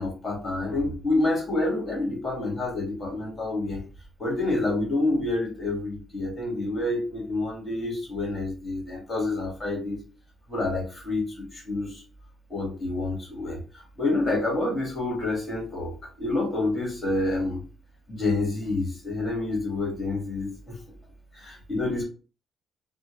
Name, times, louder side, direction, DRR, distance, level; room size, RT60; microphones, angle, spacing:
voice 1, 0.0-3.8 4.2-10.0 10.5-12.0 12.5-13.6 14.0-17.6 18.1-20.7 21.3-22.0, left 2 dB, 30° left, -1 dB, 1.8 m, -28 dB
3.5 x 2.1 x 3.1 m, 0.35 s
cardioid pair, 90°, 0 cm